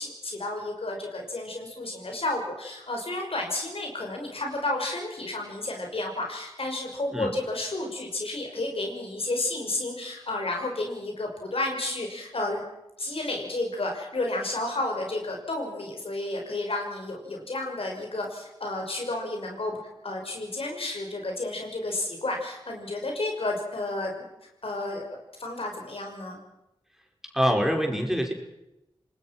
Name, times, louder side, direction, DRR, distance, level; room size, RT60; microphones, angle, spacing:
voice 1, 0.0-12.6 13.0-19.8 20.0-24.1 24.6-26.4, left 2 dB, 70° left, 1 dB, 6.1 m, -31 dB
voice 2, 27.3-28.3, equal, 5° right, 2 dB, 5.2 m, -24 dB
27.5 x 20.0 x 6.1 m, 0.89 s
cardioid pair, 50°, 10 cm